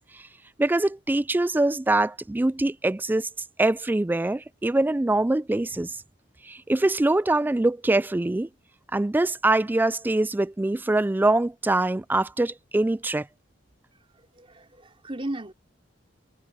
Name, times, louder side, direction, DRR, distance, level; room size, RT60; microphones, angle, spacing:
voice 1, 0.6-3.3 3.6-5.9 6.5-8.5 8.9-13.2, right 2 dB, 10° right, 0.3 m, -23 dB
voice 2, 14.1-15.5, right 1 dB, 30° right, 3.4 m, -36 dB
head